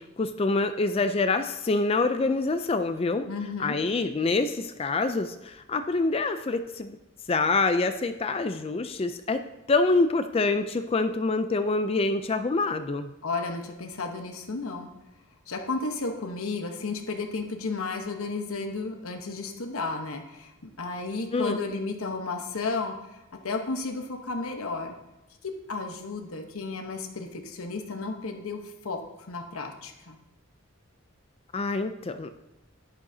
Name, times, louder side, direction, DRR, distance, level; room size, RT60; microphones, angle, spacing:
voice 1, 0.0-3.3 3.6-7.0 7.3-9.4 9.7-13.1 21.3-21.6 31.5-32.3, left 3 dB, 25° left, 9 dB, 0.3 m, -26 dB
voice 2, 3.3-3.8 13.2-14.9 15.5-23.2 23.4-24.9 25.4-30.2, left 3 dB, 75° left, 4 dB, 1.0 m, -33 dB
11.5 x 9.9 x 2.8 m, 0.97 s
head